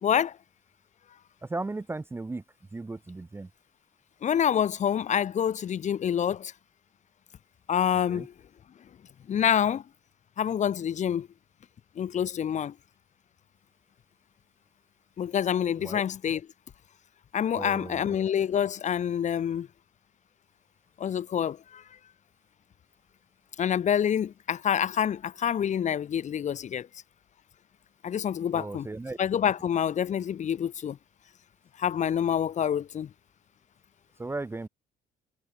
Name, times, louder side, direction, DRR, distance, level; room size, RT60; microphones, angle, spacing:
voice 1, 0.0-0.4 4.2-6.5 7.7-8.3 9.3-9.8 10.4-11.3 12.0-12.7 15.2-16.4 17.3-19.7 21.0-21.8 23.6-26.9 28.0-28.9 29.2-31.0 31.8-33.1, left 9 dB, 45° left, 1.4 m, -27 dB
voice 2, 1.4-2.4 2.7-3.5 8.1-8.3 15.8-16.0 17.5-18.1 28.5-29.2 34.2-34.7, right 2 dB, 15° right, 0.9 m, -36 dB
cardioid pair, 110°, 17 cm